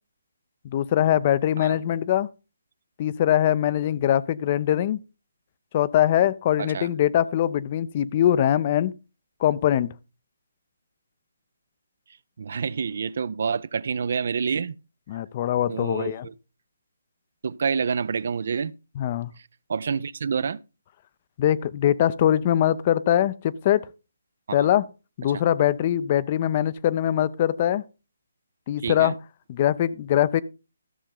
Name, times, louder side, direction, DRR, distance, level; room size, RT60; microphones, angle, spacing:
voice 1, 0.6-2.3 3.0-5.0 5.7-8.9 9.4-9.9 15.1-16.3 19.0-19.3 21.4-23.8 24.5-24.8 25.2-27.8 28.7-29.1 29.5-30.4, left 11 dB, 35° left, 0.4 m, -22 dB
voice 2, 6.6-6.9 12.4-14.8 15.7-16.3 17.4-18.7 19.7-20.6 24.5-24.7 28.8-29.1, right 6 dB, 60° right, 0.4 m, -28 dB
13.5 x 6.5 x 3.7 m
hypercardioid pair, 155°, 0 cm